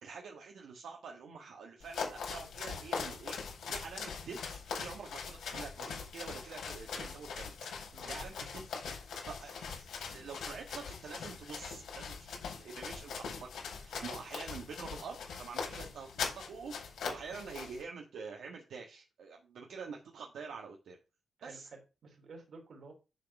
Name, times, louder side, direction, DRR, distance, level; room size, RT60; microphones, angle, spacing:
voice 1, 0.0-13.5 13.7-21.0 21.4-21.7, right 5 dB, 70° right, 1 dB, 1.4 m, -47 dB
sound 1, 1.8-17.8, left 6 dB, 85° left, 5.2 m, -41 dB
voice 2, 21.4-22.9, right 3 dB, 50° right, 2 dB, 3.2 m, -52 dB
10.0 x 4.1 x 5.9 m, 0.31 s
wide cardioid pair, 160°, 0 cm